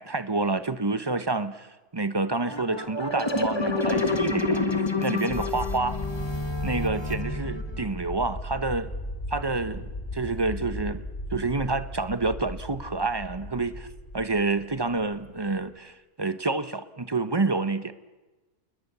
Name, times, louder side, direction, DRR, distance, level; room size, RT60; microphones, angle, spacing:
voice 1, 0.0-4.6 5.0-6.0 6.6-8.9 9.3-9.8 10.1-11.0 11.3-13.9 14.1-17.9, right 3 dB, 20° right, 1.0 m, -28 dB
sound 1, 2.5-7.8, left 2 dB, 20° left, 1.7 m, -28 dB
sound 2, 5.3-15.6, left 1 dB, 45° left, 5.6 m, -37 dB
28.5 x 21.0 x 6.9 m
omnidirectional pair, 1.3 m